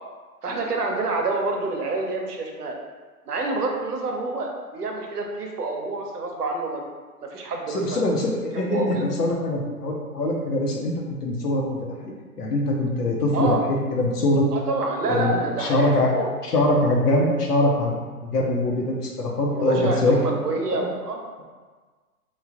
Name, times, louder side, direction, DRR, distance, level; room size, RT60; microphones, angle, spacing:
voice 1, 0.4-2.8 3.3-6.8 7.2-8.1 8.5-9.1 13.3-13.6 14.5-16.3 19.5-21.2, right 3 dB, 85° right, 1 dB, 0.8 m, -27 dB
voice 2, 7.7-10.9 11.2-11.8 12.0-14.5 15.1-16.1 16.4-18.0 18.2-20.9, left 1 dB, 85° left, -1 dB, 0.8 m, -23 dB
3.2 x 2.5 x 2.4 m, 1.4 s
hypercardioid pair, 130°, 46 cm